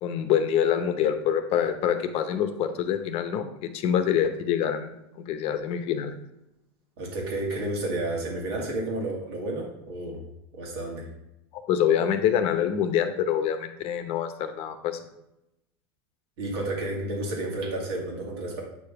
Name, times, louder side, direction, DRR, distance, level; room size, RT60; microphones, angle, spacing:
voice 1, 0.0-4.9 5.3-6.1 11.7-15.0, left 9 dB, 50° left, 9 dB, 0.8 m, -25 dB
voice 2, 7.0-10.2 10.5-11.1 16.4-18.6, right 2 dB, 80° right, -1 dB, 2.3 m, -31 dB
8.1 x 3.3 x 4.7 m, 0.87 s
supercardioid pair, 115°, 13 cm